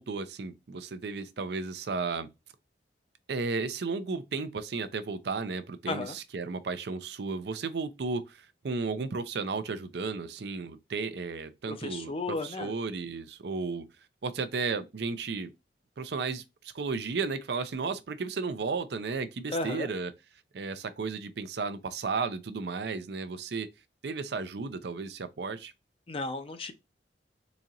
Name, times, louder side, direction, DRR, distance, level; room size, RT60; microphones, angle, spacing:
voice 1, 0.0-2.3 3.3-13.9 14.2-15.5 16.0-20.1 20.5-23.7 24.0-25.7, right 4 dB, 65° right, 0.5 m, -34 dB
voice 2, 5.9-6.2 11.7-12.7 19.5-19.9 26.1-26.7, left 2 dB, 30° left, 0.5 m, -34 dB
4.0 x 2.8 x 2.4 m
head